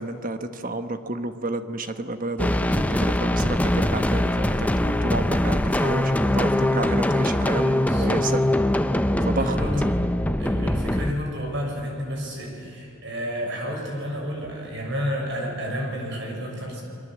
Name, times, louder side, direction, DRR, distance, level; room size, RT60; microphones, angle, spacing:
voice 1, 0.0-8.4 9.2-9.5, right 2 dB, 40° right, 8 dB, 1.3 m, -30 dB
sound 1, 2.4-11.1, left 1 dB, 5° left, 0.6 m, -22 dB
voice 2, 7.8-8.2 9.4-9.9 10.4-16.8, equal, 55° right, 0 dB, 6.6 m, -31 dB
29.5 x 23.0 x 7.7 m, 2.7 s
head